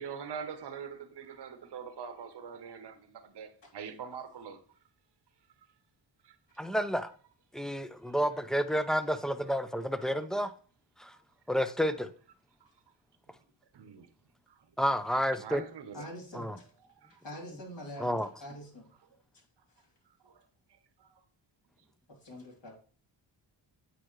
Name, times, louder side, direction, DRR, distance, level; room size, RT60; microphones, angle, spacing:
voice 1, 0.0-4.6 6.2-6.6 8.1-8.2 12.6-12.7 13.7-14.1 14.5-14.7 15.4-16.1 17.0-17.2 20.2-21.2, right 7 dB, 55° right, 1.0 m, -44 dB
voice 2, 6.6-7.1 7.5-10.5 11.0-11.1 11.5-12.1 14.8-15.6 16.3-16.6 18.0-18.3, equal, ahead, 0.5 m, -30 dB
voice 3, 15.9-16.7 17.1-18.9 19.7-19.9 22.1-22.8, equal, 60° left, 3.1 m, -45 dB
8.7 x 4.8 x 3.1 m
cardioid pair, 65°, 49 cm